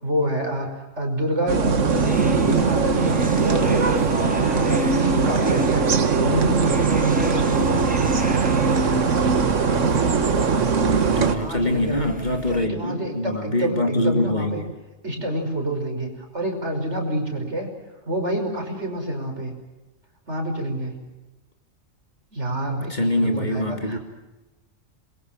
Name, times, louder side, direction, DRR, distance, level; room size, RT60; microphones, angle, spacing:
voice 1, 0.0-8.1 11.3-12.1 12.5-14.6 15.0-17.7 18.0-19.5 20.3-21.1 22.3-24.0, equal, 65° right, 4 dB, 5.8 m, -28 dB
sound 1, 1.5-11.4, right 5 dB, 85° right, 1.8 m, -20 dB
sound 2, 1.9-12.7, equal, 5° right, 1.5 m, -35 dB
voice 2, 11.0-14.7 22.9-24.0, left 1 dB, 35° left, 5 dB, 2.8 m, -24 dB
27.5 x 22.5 x 7.5 m, 1.1 s
omnidirectional pair, 1.3 m